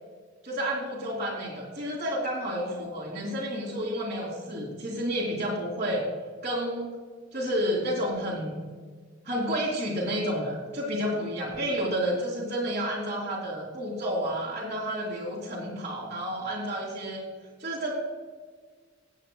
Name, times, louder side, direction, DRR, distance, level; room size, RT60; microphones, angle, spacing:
voice 1, 0.4-6.1 6.4-6.9 7.3-8.7 9.2-17.2 17.6-17.9, equal, 35° right, -7 dB, 2.6 m, -30 dB
22.5 x 8.5 x 2.3 m, 1.5 s
head